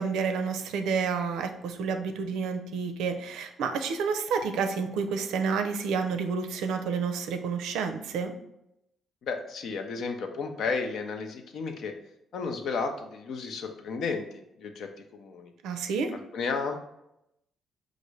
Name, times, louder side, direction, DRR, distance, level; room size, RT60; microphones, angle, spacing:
voice 1, 0.0-8.3 15.6-16.1, right 5 dB, 85° right, 6 dB, 0.4 m, -29 dB
voice 2, 9.2-11.9 12.3-14.3 14.6-15.5 16.3-16.8, left 4 dB, 70° left, 5 dB, 0.6 m, -33 dB
5.1 x 2.5 x 3.1 m, 0.83 s
cardioid pair, 90°, 0 cm